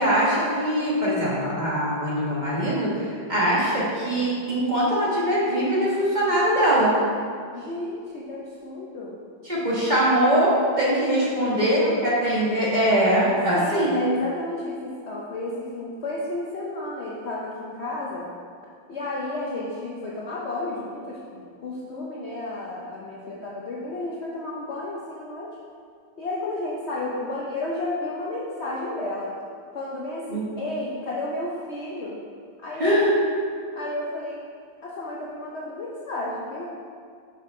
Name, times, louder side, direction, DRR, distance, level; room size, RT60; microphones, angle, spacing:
voice 1, 0.0-6.9 9.4-14.0 30.3-30.4 32.8-33.1, equal, 25° right, -7 dB, 1.5 m, -22 dB
voice 2, 7.5-9.2 11.4-12.2 13.5-18.3 18.9-25.5 26.2-29.3 29.7-32.2 32.6-33.0 33.7-34.4 34.8-36.7, left 2 dB, 75° left, -5 dB, 0.6 m, -32 dB
7.4 x 5.5 x 3.7 m, 2.2 s
omnidirectional pair, 2.2 m